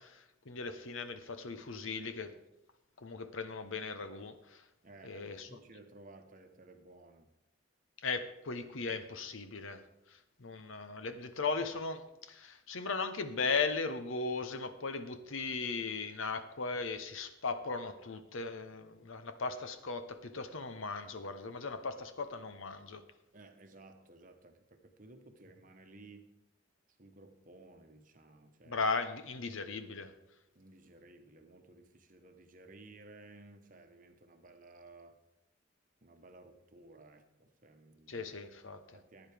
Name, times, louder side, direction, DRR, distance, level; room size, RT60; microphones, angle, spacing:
voice 1, 0.0-2.4 3.0-4.6 5.0-5.6 8.0-23.0 28.7-30.1 38.1-39.0, left 4 dB, 80° left, 9 dB, 0.9 m, -38 dB
voice 2, 4.8-7.3 23.3-26.3 27.0-28.9 30.5-35.2 36.0-38.3 38.9-39.3, right 2 dB, 40° right, 6 dB, 1.0 m, -56 dB
15.5 x 9.6 x 3.5 m, 0.88 s
head